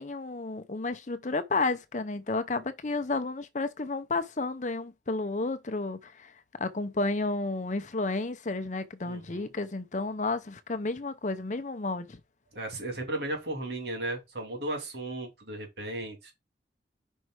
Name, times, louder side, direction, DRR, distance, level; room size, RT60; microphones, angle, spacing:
voice 1, 0.0-6.3 6.6-12.2, left 3 dB, 40° left, 0.6 m, -31 dB
voice 2, 9.0-9.5 12.5-16.3, right 1 dB, 65° right, 2.8 m, -35 dB
5.4 x 4.6 x 4.7 m
head